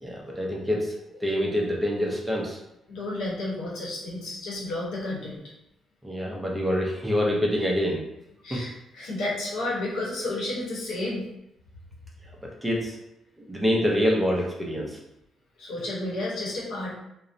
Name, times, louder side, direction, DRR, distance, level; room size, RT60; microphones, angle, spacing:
voice 1, 0.0-2.6 6.0-8.0 8.5-8.6 12.4-13.0 13.5-15.0, equal, 10° right, -2 dB, 0.5 m, -26 dB
voice 2, 2.9-5.4 8.4-11.2 15.6-16.9, left 2 dB, 80° left, -5 dB, 0.9 m, -31 dB
2.6 x 2.0 x 2.5 m, 0.83 s
cardioid pair, 90°, 0 cm